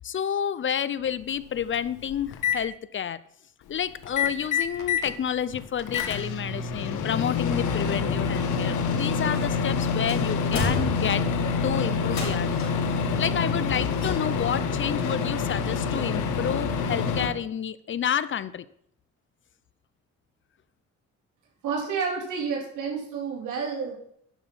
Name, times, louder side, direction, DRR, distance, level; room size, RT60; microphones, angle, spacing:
voice 1, 0.0-3.2 3.7-11.3 11.6-18.6, left 8 dB, 40° left, 17 dB, 0.5 m, -30 dB
Microwave oven, 1.1-1.2 1.6-2.6 4.0-5.1 5.5-17.3, left 5 dB, 85° left, 1.3 m, -27 dB
sound 1, 9.3-9.7 10.1-11.4 12.0-12.9 13.9-14.6 14.9-15.0, left 2 dB, 60° left, 4.1 m, -33 dB
voice 2, 21.6-24.0, right 5 dB, 85° right, -2 dB, 3.7 m, -30 dB
11.0 x 6.2 x 5.5 m, 0.69 s
cardioid pair, 90°, 30 cm